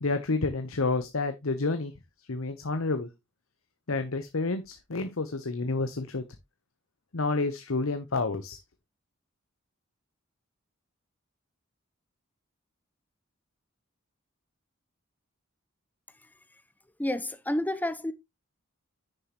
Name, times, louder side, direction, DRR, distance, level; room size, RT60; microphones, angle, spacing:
voice 1, 0.0-1.9 2.3-3.1 3.9-6.2 7.1-8.6, left 3 dB, 80° left, 0.9 m, -29 dB
voice 2, 17.0-18.1, left 1 dB, 10° left, 0.7 m, -29 dB
9.8 x 6.7 x 3.0 m
head